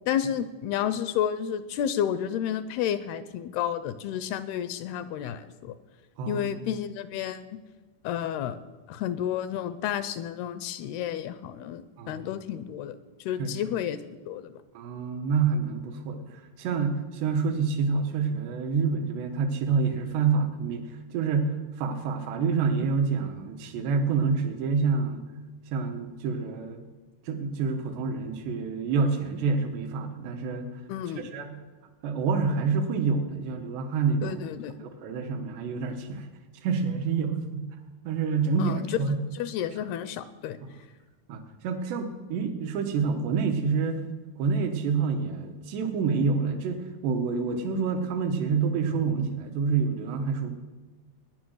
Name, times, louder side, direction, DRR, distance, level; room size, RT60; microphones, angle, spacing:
voice 1, 0.1-5.8 6.3-7.4 8.0-8.6 8.9-14.0 14.3-14.5 30.9-31.3 34.2-34.8 38.6-38.8 39.3-40.6, left 10 dB, 80° left, 13 dB, 2.4 m, -31 dB
voice 2, 6.2-6.5 12.0-12.3 13.4-13.5 14.8-25.2 25.7-26.8 27.3-30.7 31.3-31.6 32.0-34.4 34.8-36.3 36.6-37.7 38.1-39.2 41.3-44.0 44.4-50.5, right 5 dB, 80° right, 6 dB, 3.4 m, -27 dB
18.5 x 10.0 x 6.4 m, 1.2 s
omnidirectional pair, 4.8 m